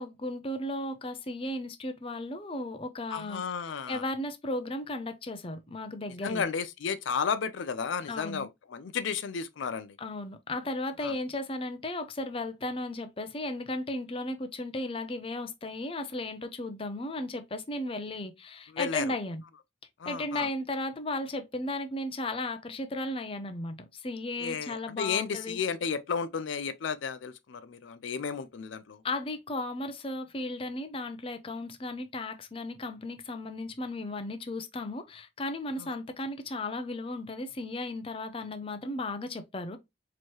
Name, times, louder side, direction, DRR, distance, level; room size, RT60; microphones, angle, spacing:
voice 1, 0.0-3.4 3.9-6.4 8.1-8.5 10.0-19.4 20.1-25.6 29.0-39.8, left 2 dB, 30° left, 0.5 m, -35 dB
voice 2, 3.1-4.0 6.2-10.0 11.0-11.1 18.7-19.1 20.0-20.5 24.4-29.0 35.8-35.9, left 6 dB, 75° left, 0.4 m, -33 dB
4.4 x 3.1 x 3.0 m
head